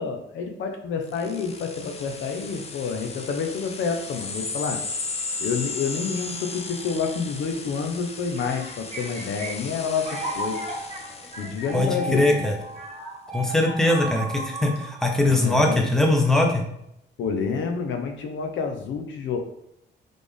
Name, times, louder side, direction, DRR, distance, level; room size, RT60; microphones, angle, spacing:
voice 1, 0.0-4.8 5.4-10.6 11.4-12.5 15.4-15.8 17.2-19.4, left 5 dB, 75° left, 5 dB, 0.7 m, -28 dB
sound 1, 1.1-12.2, left 3 dB, 30° left, 0.6 m, -36 dB
sound 2, 8.4-15.9, right 1 dB, 30° right, 1.2 m, -35 dB
voice 2, 11.7-12.6 13.3-16.6, left 2 dB, ahead, 1 dB, 0.9 m, -21 dB
4.1 x 3.3 x 3.5 m, 0.79 s
cardioid pair, 90°, 20 cm